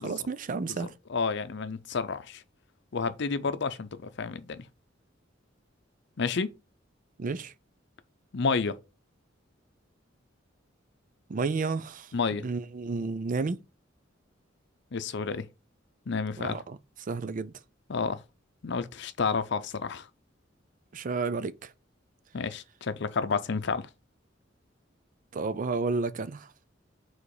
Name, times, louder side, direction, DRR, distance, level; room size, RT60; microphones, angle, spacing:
voice 1, 0.0-0.9 7.2-7.5 11.3-12.1 12.4-13.6 16.4-17.5 20.9-21.7 25.3-26.5, right 4 dB, 45° right, 0.5 m, -31 dB
voice 2, 0.7-2.4 2.9-4.6 6.2-6.5 8.3-8.7 12.1-12.5 14.9-15.5 16.1-16.6 17.9-18.2 18.6-20.1 22.3-23.9, left 5 dB, 65° left, 0.6 m, -30 dB
5.0 x 4.0 x 4.8 m
head